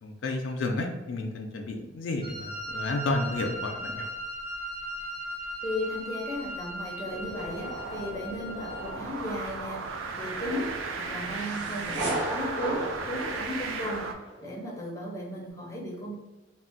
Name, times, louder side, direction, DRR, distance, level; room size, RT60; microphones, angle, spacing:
voice 1, 0.0-4.1, left 2 dB, 70° left, 2 dB, 0.3 m, -31 dB
Wind instrument woodwind instrument, 2.2-8.9, equal, 45° right, 1.2 m, -38 dB
voice 2, 5.6-9.8 10.2-10.7 11.0-14.1 14.4-16.2, left 1 dB, 15° left, -3 dB, 0.5 m, -35 dB
sound 1, 7.1-14.1, right 4 dB, 80° right, 0.4 m, -36 dB
sound 2, 10.3-14.4, right 1 dB, 60° right, 0.8 m, -35 dB
2.4 x 2.0 x 3.7 m, 1.1 s
head